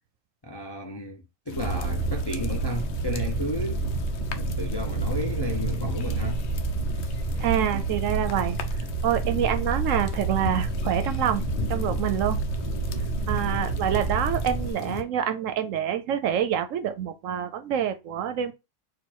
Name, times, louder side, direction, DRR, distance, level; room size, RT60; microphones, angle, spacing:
voice 1, 0.4-3.8 4.3-6.4 7.0-7.3, left 1 dB, 35° left, 0.4 m, -33 dB
sound 1, 1.5-15.0, left 9 dB, 60° left, 0.8 m, -39 dB
sound 2, 1.6-14.7, right 3 dB, 35° right, 0.9 m, -29 dB
voice 2, 7.4-8.6 9.0-11.4 11.7-12.4 13.3-18.5, right 10 dB, 70° right, 0.9 m, -26 dB
4.4 x 2.5 x 4.5 m
omnidirectional pair, 1.4 m